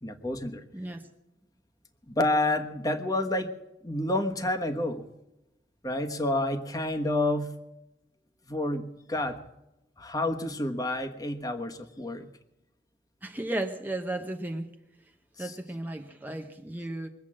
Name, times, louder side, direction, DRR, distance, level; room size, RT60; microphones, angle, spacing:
voice 1, 0.0-0.6 2.1-3.5 3.8-5.0 5.8-7.5 8.5-9.4 10.0-12.3 15.4-15.6, left 1 dB, 20° left, 6 dB, 1.3 m, -29 dB
voice 2, 0.7-1.1 13.2-14.7 15.4-17.1, right 1 dB, 10° right, 4 dB, 0.8 m, -34 dB
22.5 x 8.1 x 7.6 m, 0.93 s
head